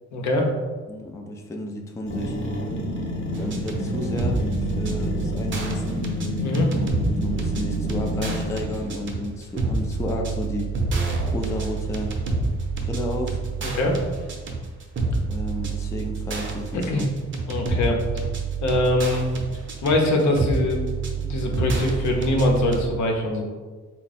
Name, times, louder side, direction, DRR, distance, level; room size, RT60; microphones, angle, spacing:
voice 1, 0.1-0.5 6.4-6.7 13.6-14.0 16.7-17.0 17.5-18.0 18.6-19.2 19.8-20.8 21.2-23.4, left 1 dB, 70° left, 1 dB, 0.8 m, -22 dB
voice 2, 0.9-2.4 3.3-4.4 4.8-6.0 6.7-6.9 7.2-10.7 11.3-12.1 12.8-13.4 15.3-17.1, left 1 dB, 10° left, 1 dB, 0.4 m, -32 dB
sound 1, 2.1-8.8, left 1 dB, 40° left, 0.9 m, -29 dB
sound 2, 3.3-22.9, right 4 dB, 40° right, 0.7 m, -28 dB
3.5 x 2.2 x 4.1 m, 1.4 s
cardioid pair, 90°, 30 cm